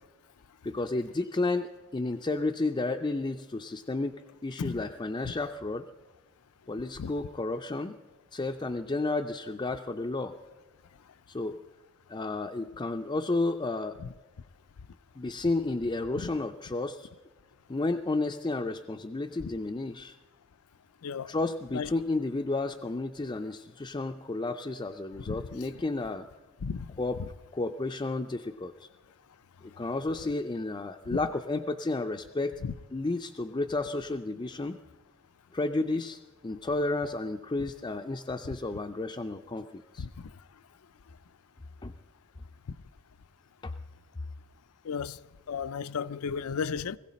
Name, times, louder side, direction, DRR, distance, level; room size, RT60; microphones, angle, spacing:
voice 1, 0.6-5.8 6.7-8.0 8.3-10.3 11.3-11.6 12.1-14.0 15.2-17.1 17.7-20.2 21.2-26.3 27.0-27.2 27.5-28.9 29.8-32.5 32.9-34.8 35.5-40.1 41.8-41.9 43.6-43.7, left 2 dB, 20° left, 0.4 m, -32 dB
voice 2, 21.0-21.3 21.7-21.9 25.3-25.4 26.6-27.0 32.6-32.7 40.0-40.1 44.8-45.2 45.5-47.0, left 6 dB, 80° left, 0.5 m, -33 dB
21.0 x 15.5 x 4.2 m
head